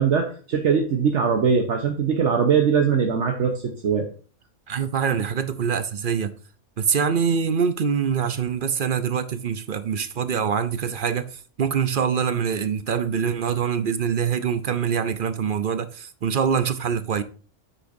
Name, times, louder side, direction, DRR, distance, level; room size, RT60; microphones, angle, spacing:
voice 1, 0.0-4.1, right 6 dB, 70° right, 1.3 m, -21 dB
voice 2, 4.7-6.3 6.8-17.2, right 7 dB, 50° right, 0.7 m, -24 dB
8.9 x 8.3 x 2.7 m
omnidirectional pair, 1.3 m